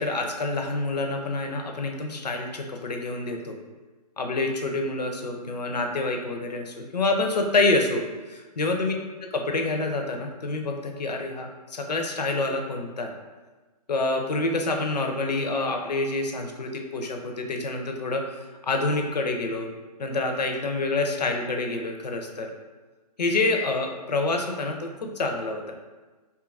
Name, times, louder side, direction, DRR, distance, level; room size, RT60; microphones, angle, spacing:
voice 1, 0.0-3.6 4.2-8.9 9.2-13.1 13.9-18.2 18.6-19.7 20.0-22.5 23.2-25.7, left 2 dB, 85° left, 3 dB, 0.5 m, -27 dB
2.7 x 2.3 x 2.4 m, 1.3 s
figure-of-eight pair, 135°, 20 cm